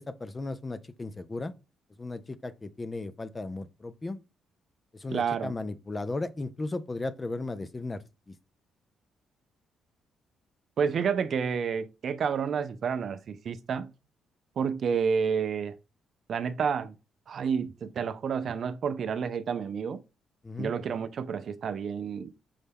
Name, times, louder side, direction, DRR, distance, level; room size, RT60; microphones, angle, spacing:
voice 1, 0.0-1.5 2.0-4.2 4.9-8.0 20.4-20.7, left 2 dB, 25° left, 0.4 m, -35 dB
voice 2, 5.1-5.5 10.8-13.9 14.6-15.7 16.3-16.9 17.3-20.0 20.6-22.3, right 6 dB, 55° right, 0.4 m, -30 dB
5.4 x 2.2 x 3.4 m
cardioid pair, 95°, 0 cm